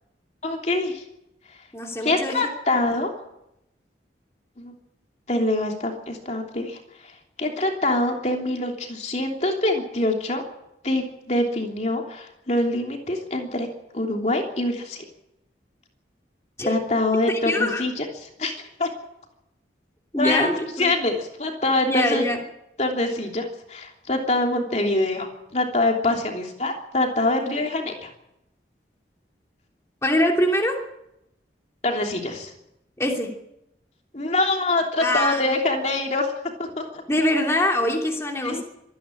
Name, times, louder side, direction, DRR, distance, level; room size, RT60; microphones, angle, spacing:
voice 1, 0.4-1.0 2.0-3.1 4.6-4.7 5.3-7.1 7.4-10.4 10.8-13.7 13.9-15.0 16.6-18.5 18.8-18.9 20.2-22.2 22.8-25.3 25.5-28.1 31.8-32.5 34.1-36.3 36.6-37.0 38.4-38.6, left 2 dB, 40° left, 2 dB, 3.1 m, -24 dB
voice 2, 1.7-2.4 16.6-16.7 17.3-17.8 20.1-20.9 21.9-22.4 30.0-30.8 33.0-33.3 35.0-35.5 37.1-38.6, left 1 dB, 15° left, 0 dB, 2.9 m, -23 dB
25.5 x 10.5 x 10.0 m, 0.85 s
head